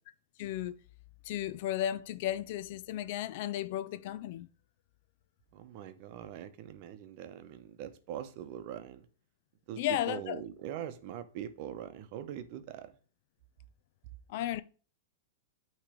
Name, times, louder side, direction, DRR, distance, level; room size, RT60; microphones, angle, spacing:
voice 1, 0.4-0.8 1.2-4.5 9.8-10.4 14.3-14.6, left 12 dB, 55° left, 0.5 m, -34 dB
voice 2, 5.5-9.0 9.7-12.9, right 10 dB, 50° right, 0.9 m, -42 dB
8.8 x 3.2 x 5.0 m
hypercardioid pair, 130°, 0 cm